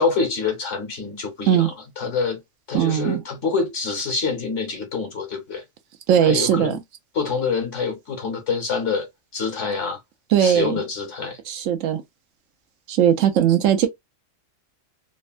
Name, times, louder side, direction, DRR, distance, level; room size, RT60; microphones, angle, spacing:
voice 1, 0.0-2.4 2.7-5.6 6.2-6.8 7.1-10.0 10.4-11.4, left 4 dB, 65° left, 1.4 m, -26 dB
voice 2, 2.7-3.2 6.1-6.8 10.3-10.8 11.5-12.0 12.9-13.9, right 9 dB, 75° right, 1.0 m, -19 dB
3.4 x 2.2 x 2.3 m
omnidirectional pair, 1.3 m